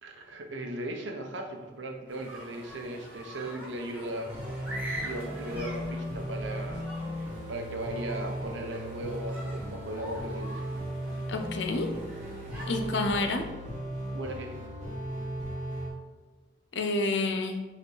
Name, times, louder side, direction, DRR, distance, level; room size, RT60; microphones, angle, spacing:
voice 1, 0.0-4.3 5.0-6.9 7.5-10.6 12.6-12.8 14.1-14.5, right 1 dB, 85° right, 2 dB, 1.0 m, -37 dB
sound 1, 2.1-13.3, equal, 10° right, 1.7 m, -44 dB
sound 2, 4.2-15.9, equal, 40° right, 1.9 m, -36 dB
voice 2, 11.3-11.9 12.7-13.4 16.7-17.6, left 2 dB, 70° left, 5 dB, 0.7 m, -29 dB
4.9 x 4.2 x 4.7 m, 1.2 s
head